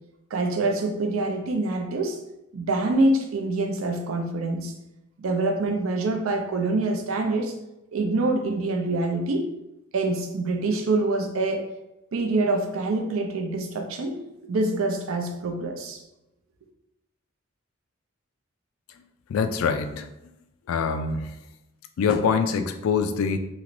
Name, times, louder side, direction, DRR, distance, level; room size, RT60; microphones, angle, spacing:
voice 1, 0.3-2.2 2.5-4.7 5.2-7.5 7.9-9.5 9.9-11.7 12.1-16.0, right 2 dB, 75° right, 4 dB, 0.5 m, -25 dB
voice 2, 19.3-20.1 20.7-21.3 22.0-23.4, left 5 dB, 80° left, 8 dB, 0.3 m, -24 dB
3.1 x 2.9 x 2.5 m, 0.91 s
head